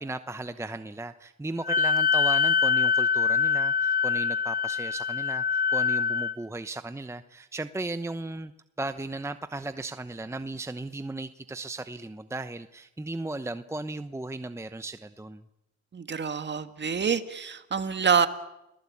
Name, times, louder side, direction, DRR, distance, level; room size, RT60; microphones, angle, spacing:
voice 1, 0.0-8.5 8.8-15.4, right 2 dB, 10° right, 11 dB, 0.9 m, -36 dB
Wind instrument woodwind instrument, 1.6-6.3, left 6 dB, 30° left, 1.4 m, -24 dB
voice 2, 15.9-18.3, right 6 dB, 35° right, 10 dB, 1.9 m, -26 dB
29.0 x 19.0 x 8.6 m, 0.90 s
cardioid pair, 90°, 30 cm